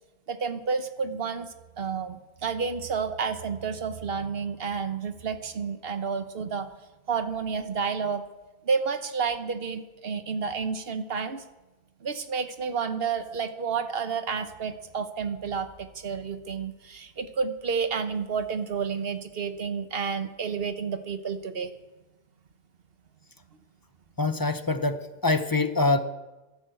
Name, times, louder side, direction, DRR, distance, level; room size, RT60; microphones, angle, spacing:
voice 1, 0.3-1.5 1.8-6.7 7.1-8.2 8.6-11.4 12.0-21.7, right 5 dB, 70° right, 9 dB, 1.2 m, -30 dB
voice 2, 24.2-26.0, left 3 dB, 25° left, 10 dB, 0.7 m, -24 dB
11.5 x 11.5 x 7.7 m, 1.1 s
omnidirectional pair, 1.1 m